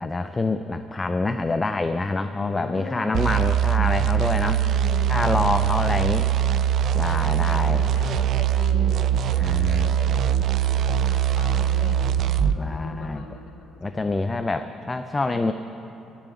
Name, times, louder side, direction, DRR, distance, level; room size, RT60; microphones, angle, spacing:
voice 1, 0.0-4.6 5.1-6.3 6.9-7.8 9.4-10.2 12.6-13.2 13.8-15.5, left 3 dB, 15° left, 9 dB, 0.4 m, -26 dB
voice 2, 2.4-3.6 4.5-6.3 7.2-13.7 14.1-14.4 15.2-15.4, left 3 dB, 85° left, 1 dB, 1.9 m, -40 dB
sound 1, 3.1-12.6, right 10 dB, 55° right, 0.3 m, -22 dB
Bird, 5.1-11.6, right 2 dB, 5° right, 2.0 m, -47 dB
21.0 x 7.1 x 7.1 m, 2.9 s
cardioid pair, 135°, 0 cm